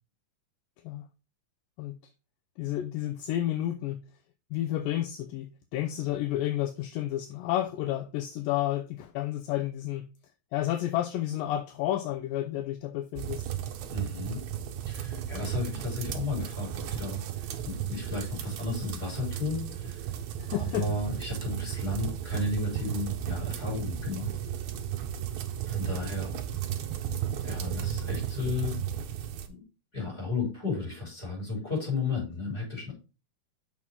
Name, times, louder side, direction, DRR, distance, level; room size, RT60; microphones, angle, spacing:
voice 1, 2.6-4.0 4.5-10.1 10.5-13.4 20.4-21.0, left 13 dB, 80° left, 2.1 m, -31 dB
sound 1, 13.2-29.5, right 10 dB, 75° right, 1.7 m, -34 dB
voice 2, 13.9-14.4 14.8-20.1 20.5-24.3 25.6-26.3 27.4-28.8 29.9-32.9, left 3 dB, 15° left, 4.3 m, -33 dB
6.3 x 6.0 x 3.7 m
omnidirectional pair, 4.2 m